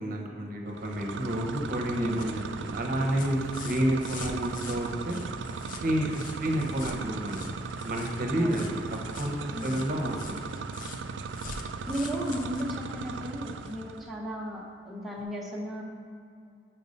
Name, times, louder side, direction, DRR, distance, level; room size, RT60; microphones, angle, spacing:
voice 1, 0.0-5.2 5.8-7.5 7.8-10.4, equal, 50° right, 1 dB, 0.9 m, -30 dB
sound 1, 0.7-14.1, right 5 dB, 80° right, 0.4 m, -38 dB
voice 2, 1.9-2.2 8.4-8.6 9.5-9.8 11.9-15.8, equal, ahead, -4 dB, 0.8 m, -35 dB
sound 2, 2.2-13.8 15.2-15.3, left 4 dB, 45° left, 0.5 m, -46 dB
5.7 x 5.4 x 5.2 m, 2.3 s
head